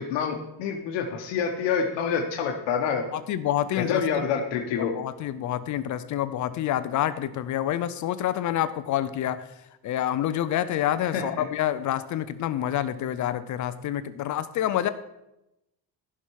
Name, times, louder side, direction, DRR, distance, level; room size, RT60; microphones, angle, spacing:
voice 1, 0.0-3.0 3.7-4.9 11.0-11.2, left 6 dB, 75° left, 2 dB, 1.2 m, -27 dB
voice 2, 3.1-4.3 4.8-9.5 9.8-14.9, left 11 dB, 45° left, 13 dB, 0.5 m, -28 dB
14.0 x 5.8 x 4.7 m, 0.90 s
cardioid pair, 165°, 43 cm